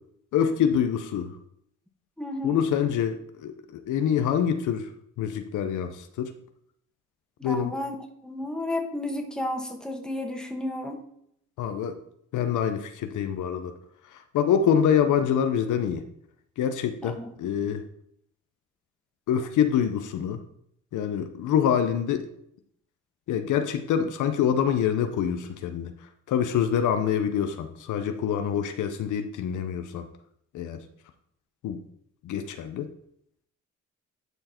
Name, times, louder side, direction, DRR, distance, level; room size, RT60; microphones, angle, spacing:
voice 1, 0.3-1.4 2.4-4.9 5.2-6.3 7.4-7.7 11.6-11.9 12.3-13.7 14.1-16.0 16.6-17.8 19.3-20.4 20.9-22.3 23.3-25.9 26.3-30.1 30.5-30.8 31.6-31.8 32.2-32.9, left 8 dB, 80° left, 7 dB, 0.9 m, -25 dB
voice 2, 2.2-2.6 7.4-7.9 8.2-11.0 17.0-17.3, left 1 dB, ahead, 2 dB, 1.7 m, -32 dB
11.0 x 4.6 x 4.5 m, 0.70 s
cardioid pair, 90°, 30 cm